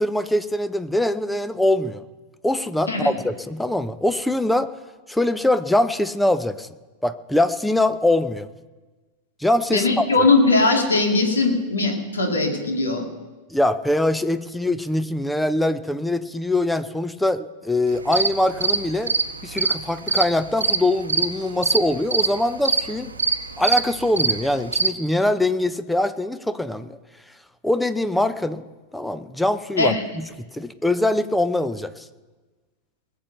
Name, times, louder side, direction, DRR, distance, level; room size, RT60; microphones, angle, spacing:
voice 1, 0.0-2.0 2.4-4.7 5.1-6.7 7.0-8.5 9.4-10.1 13.5-19.1 19.4-23.1 23.6-27.0 27.6-28.6 28.9-32.1, left 1 dB, 5° left, 13 dB, 0.7 m, -23 dB
voice 2, 9.7-13.0 29.8-30.0, left 3 dB, 70° left, 3 dB, 2.4 m, -20 dB
sound 1, 17.9-24.9, right 4 dB, 75° right, 0.9 m, -24 dB
20.0 x 7.3 x 6.7 m, 1.3 s
figure-of-eight pair, 90°, 0 cm